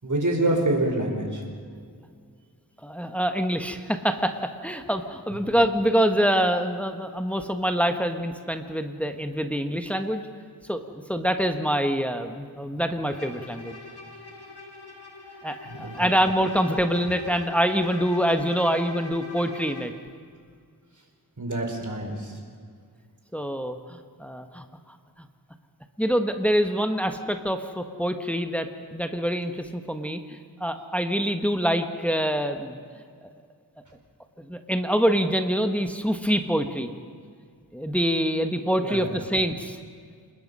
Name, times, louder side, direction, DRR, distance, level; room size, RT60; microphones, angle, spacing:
voice 1, 0.0-1.4 5.4-5.5 15.6-16.1 21.4-22.4 38.8-39.3, right 1 dB, 50° right, 2 dB, 4.6 m, -27 dB
voice 2, 2.8-4.4 4.6-10.2 10.7-13.8 15.4-19.9 23.3-24.6 26.0-32.8 34.4-36.9 37.7-39.8, equal, 5° left, 6 dB, 1.4 m, -25 dB
Bowed string instrument, 13.1-20.0, left 3 dB, 75° left, 3.1 m, -42 dB
28.5 x 20.0 x 5.6 m, 2.1 s
wide cardioid pair, 70°, 39 cm